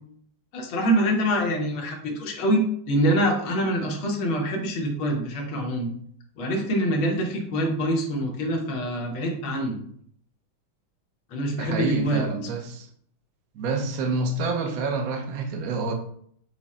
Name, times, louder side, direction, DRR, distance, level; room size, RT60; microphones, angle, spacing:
voice 1, 0.5-5.9 6.4-9.8 11.3-12.3, equal, 75° left, 1.6 m, -25 dB
voice 2, 11.6-12.9 13.5-15.9, right 3 dB, 80° right, 0.7 m, -27 dB
6.1 x 2.1 x 4.1 m
omnidirectional pair, 2.3 m